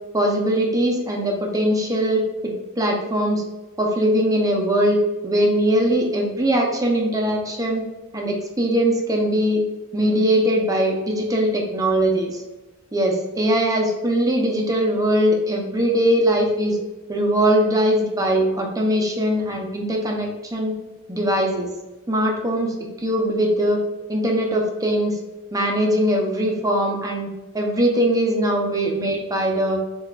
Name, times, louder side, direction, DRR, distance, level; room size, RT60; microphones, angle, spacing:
voice 1, 0.1-3.4 3.8-7.9 8.1-9.6 9.9-12.4 12.9-16.8 17.1-20.8 21.1-21.7 22.1-23.8 24.1-25.2 25.5-27.3 27.5-29.8, equal, 15° right, 1 dB, 0.5 m, -21 dB
6.9 x 2.3 x 2.2 m, 1.1 s
head